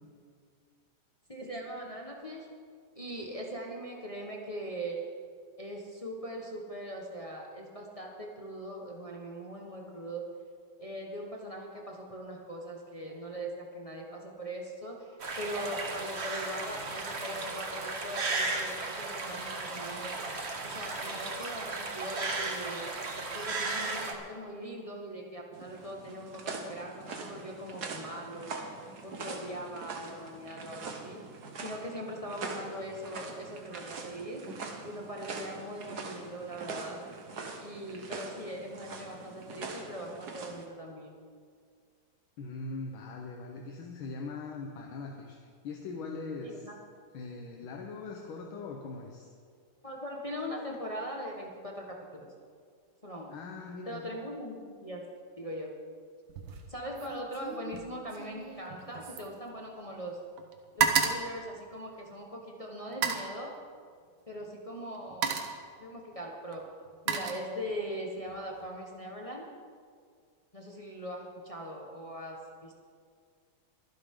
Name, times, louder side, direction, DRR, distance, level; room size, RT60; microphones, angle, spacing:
voice 1, 1.3-2.5 2.9-5.0 5.6-10.3 10.8-20.1 20.6-22.9 23.3-28.6 29.0-31.2 31.6-34.5 34.8-37.0 37.6-41.1 46.4-46.7 49.8-52.3 53.0-53.3 53.9-55.1 55.4-55.7 56.7-60.2 60.7-63.6 64.3-65.4 65.8-66.6 67.0-69.5 70.5-72.8, equal, 20° left, -1 dB, 1.2 m, -41 dB
sound 1, 15.2-24.1, right 3 dB, 35° right, 1.3 m, -35 dB
sound 2, 25.5-40.7, right 4 dB, 55° right, 1.7 m, -43 dB
voice 2, 42.4-45.4 45.6-46.7 47.1-49.3 53.3-54.1, left 3 dB, 75° left, 1 dB, 1.9 m, -41 dB
sound 3, 56.3-56.7 57.0-60.1 60.4-62.3 62.9-63.3 64.4-64.6 64.9-65.7 66.5-67.9 68.3-68.7, right 6 dB, 70° right, 1.8 m, -33 dB
23.5 x 10.5 x 3.8 m, 2.1 s
omnidirectional pair, 2.3 m